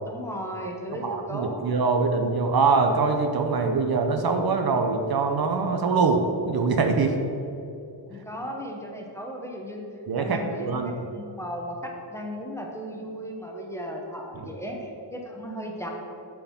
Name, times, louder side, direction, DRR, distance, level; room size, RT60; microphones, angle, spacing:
voice 1, 0.0-1.6 8.1-9.9 10.2-15.9, equal, 5° left, 0 dB, 1.0 m, -36 dB
voice 2, 1.0-7.2 10.1-10.9, right 4 dB, 55° right, 5 dB, 0.8 m, -23 dB
9.1 x 4.7 x 7.2 m, 2.7 s
wide cardioid pair, 145°, 43 cm